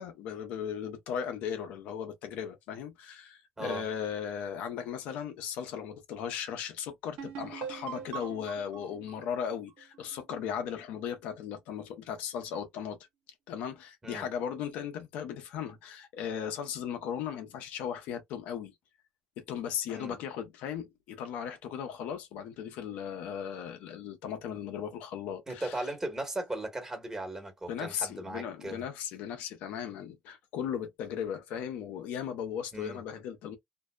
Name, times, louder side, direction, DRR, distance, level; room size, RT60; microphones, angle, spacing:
voice 1, 0.0-13.0 13.5-18.7 19.4-25.7 27.7-33.6, left 8 dB, 80° left, 0.6 m, -37 dB
sound 1, 7.2-10.8, right 8 dB, 80° right, 0.6 m, -43 dB
voice 2, 25.5-28.8 32.7-33.0, right 1 dB, 20° right, 1.4 m, -37 dB
2.6 x 2.0 x 2.3 m
supercardioid pair, 70°, 2 cm